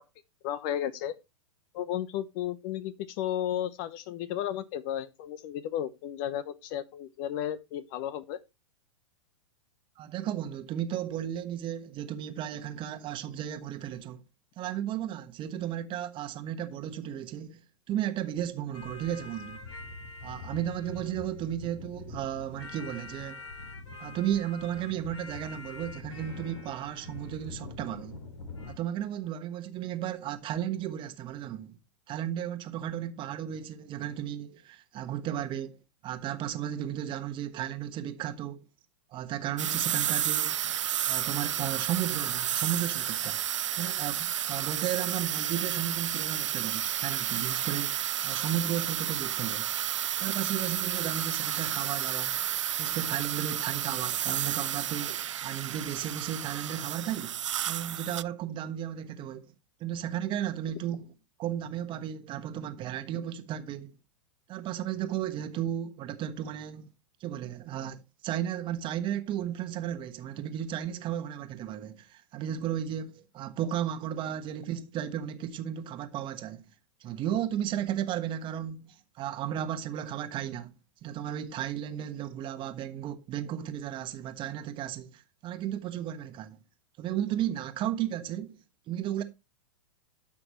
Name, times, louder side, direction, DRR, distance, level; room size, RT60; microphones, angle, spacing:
voice 1, 0.4-1.2 1.7-8.4, left 11 dB, 45° left, 1.0 m, -33 dB
voice 2, 10.0-14.2 14.6-17.6 17.9-19.6 20.2-23.4 24.0-28.1 28.7-31.8 32.1-35.8 36.0-38.7 39.1-40.6 41.1-43.4 43.8-49.7 50.2-52.4 52.8-57.3 57.7-59.5 59.8-61.1 61.4-63.9 64.5-66.9 67.2-76.7 77.0-80.7 81.0-86.6 87.0-88.6 88.9-89.2, right 10 dB, 30° right, 1.3 m, -34 dB
sound 1, 18.7-28.7, left 3 dB, 65° left, 3.2 m, -44 dB
sound 2, 39.6-58.2, right 10 dB, 75° right, 0.4 m, -31 dB
12.5 x 6.0 x 3.1 m
hypercardioid pair, 105°, 16 cm